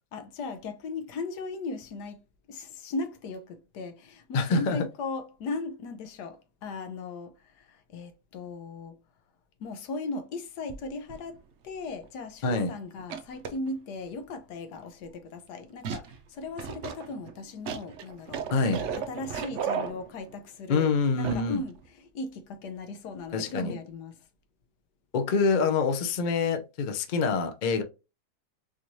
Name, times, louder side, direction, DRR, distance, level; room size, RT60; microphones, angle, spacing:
voice 1, 0.1-2.2 2.5-9.0 9.6-11.4 11.6-18.4 19.0-20.9 21.2-24.2, left 3 dB, 80° left, 1.3 m, -37 dB
voice 2, 4.3-4.9 12.4-12.7 18.5-18.8 20.7-21.6 23.3-23.7 25.1-27.8, left 4 dB, 55° left, 0.5 m, -26 dB
sound 1, 11.1-11.4 12.0-12.1 13.0-13.7 15.8-16.2 16.6-20.4 21.2-21.6 21.8-21.9, right 7 dB, 65° right, 0.7 m, -34 dB
4.2 x 3.1 x 2.6 m
omnidirectional pair, 1.8 m